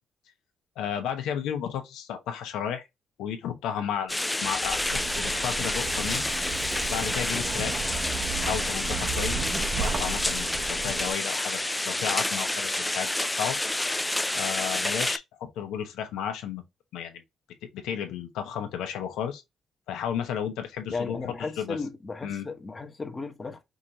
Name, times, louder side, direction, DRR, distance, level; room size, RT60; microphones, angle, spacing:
voice 1, 0.8-2.8 3.2-4.1 4.4-6.3 6.9-7.9 8.4-11.6 11.8-13.6 14.3-16.6 16.9-17.2 17.7-19.4 19.9-21.8 22.2-22.5, left 8 dB, 90° left, 1.0 m, -33 dB
sound 1, 4.1-15.2, left 1 dB, 10° left, 0.3 m, -29 dB
Zipper (clothing), 4.4-11.1, right 4 dB, 55° right, 0.8 m, -34 dB
voice 2, 20.9-23.6, left 4 dB, 25° left, 1.0 m, -35 dB
5.1 x 2.7 x 3.0 m
cardioid pair, 90°, 0 cm